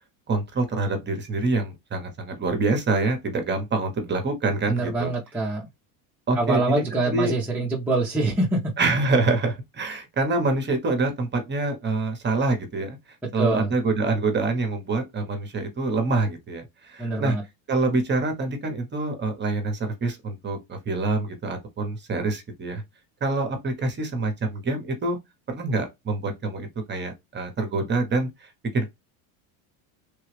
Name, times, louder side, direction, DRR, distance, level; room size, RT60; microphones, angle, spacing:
voice 1, 0.3-5.1 6.3-7.3 8.8-13.0 13.3-17.4 17.7-22.8 23.2-25.2 25.5-28.3 28.7-28.9, right 3 dB, 25° right, 1.0 m, -26 dB
voice 2, 4.7-5.7 6.4-8.7 13.4-13.7 17.0-17.4, right 2 dB, 5° right, 0.7 m, -25 dB
3.4 x 2.3 x 3.3 m
supercardioid pair, 120°, 46 cm